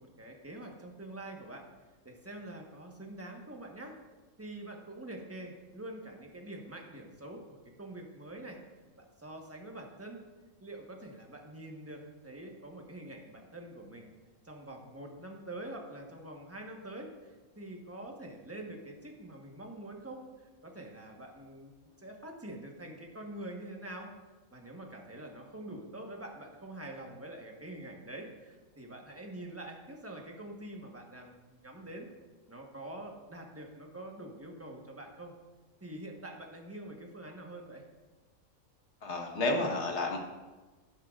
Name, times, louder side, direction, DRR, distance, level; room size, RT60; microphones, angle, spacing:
voice 1, 0.0-1.6 2.0-4.0 4.4-8.6 9.0-10.2 10.6-14.1 14.4-20.2 20.6-21.7 22.0-24.1 24.5-32.1 32.5-35.3 35.8-37.8, right 1 dB, 10° right, 1 dB, 1.1 m, -45 dB
voice 2, 39.0-40.2, left 2 dB, 55° left, 2 dB, 1.6 m, -31 dB
12.0 x 11.5 x 2.5 m, 1.2 s
omnidirectional pair, 1.5 m